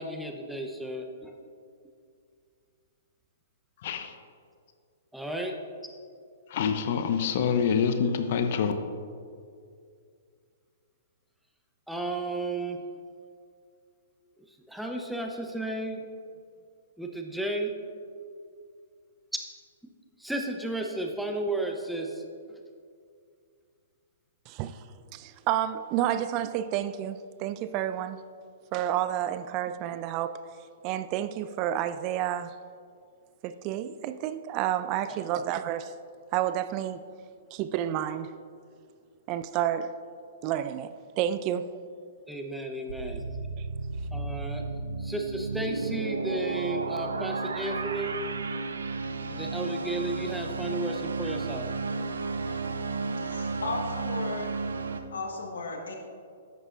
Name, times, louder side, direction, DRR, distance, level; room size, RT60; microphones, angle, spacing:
voice 1, 0.0-1.4 5.1-5.5 11.9-12.8 14.4-16.0 17.0-17.7 20.2-22.6 35.1-35.2 42.3-43.2 44.1-44.6 45.0-48.2 49.3-51.7, right 1 dB, ahead, 0.8 m, -33 dB
voice 2, 3.8-4.1 6.5-8.7, left 7 dB, 55° left, 0.7 m, -26 dB
voice 3, 24.5-24.8 25.1-28.2 28.7-30.4 30.8-32.6 33.4-36.0 36.3-37.0 37.5-38.3 39.3-40.0 40.4-41.8 43.6-43.7, right 11 dB, 35° right, 0.3 m, -30 dB
sound 1, 42.9-55.0, right 3 dB, 85° right, 0.6 m, -33 dB
voice 4, 53.2-54.5 55.1-56.0, left 3 dB, 80° left, 1.5 m, -35 dB
11.0 x 8.0 x 2.5 m
hypercardioid pair, 125°, 0 cm